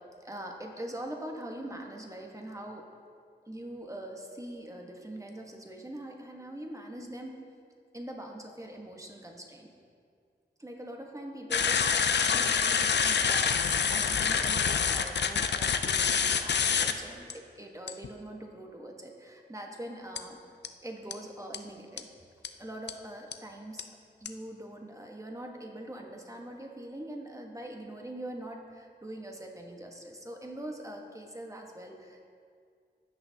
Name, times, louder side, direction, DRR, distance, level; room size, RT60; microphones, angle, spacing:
voice 1, 0.2-2.9 3.5-7.3 7.9-9.7 10.6-20.4 20.8-22.1 22.6-23.9 24.2-32.3, right 1 dB, 15° right, 1 dB, 1.2 m, -43 dB
sound 1, 11.5-16.9 17.3-17.4 17.9-18.1 20.2-20.3 20.6-20.7 21.1-21.2 21.5-21.6 22.0-22.1 22.4-22.5 22.9-23.0 23.3-23.4 23.8-23.9 24.3-24.4, left 6 dB, 70° left, 0.4 m, -26 dB
15.5 x 6.0 x 2.8 m, 2.2 s
wide cardioid pair, 60°, 18 cm